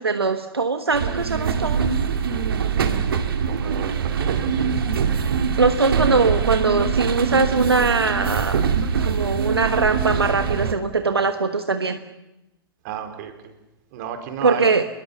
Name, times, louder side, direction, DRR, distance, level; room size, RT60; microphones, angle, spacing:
voice 1, 0.0-1.9 5.6-8.6 9.0-12.0 14.4-14.8, right 4 dB, 85° right, 8 dB, 1.3 m, -21 dB
sound 1, 0.9-10.7, right 6 dB, 65° right, 2.3 m, -23 dB
voice 2, 3.4-4.6 12.8-13.3 13.9-14.7, right 9 dB, 50° right, 6 dB, 4.3 m, -33 dB
27.0 x 21.5 x 7.0 m, 0.97 s
figure-of-eight pair, 105°, 13 cm